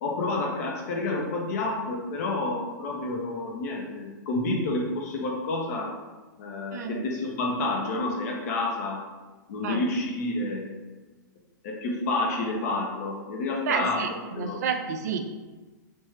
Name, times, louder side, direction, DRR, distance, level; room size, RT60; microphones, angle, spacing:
voice 1, 0.0-5.9 6.4-9.0 9.5-10.7 11.6-14.6, left 2 dB, 50° left, -1 dB, 0.7 m, -29 dB
voice 2, 6.7-7.0 9.6-9.8 13.6-15.3, right 6 dB, 55° right, 6 dB, 0.4 m, -30 dB
3.2 x 3.1 x 3.1 m, 1.3 s
figure-of-eight pair, 105°, 11 cm